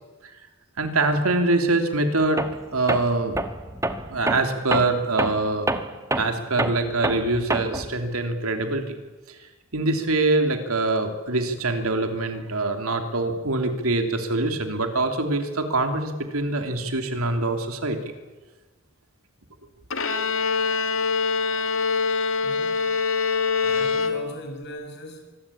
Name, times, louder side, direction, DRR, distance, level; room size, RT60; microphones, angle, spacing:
voice 1, 0.8-2.4 2.7-3.4 4.1-5.7 6.2-9.0 9.3-18.0, right 2 dB, 80° right, 6 dB, 3.0 m, -24 dB
Tools, 2.4-2.6 2.9-7.9, right 2 dB, 15° right, 1.3 m, -27 dB
Bowed string instrument, 19.9-24.6, left 5 dB, 65° left, 1.9 m, -24 dB
voice 2, 22.4-22.9 23.6-25.2, left 1 dB, 50° left, 4 dB, 6.2 m, -39 dB
25.0 x 20.5 x 8.7 m, 1.2 s
head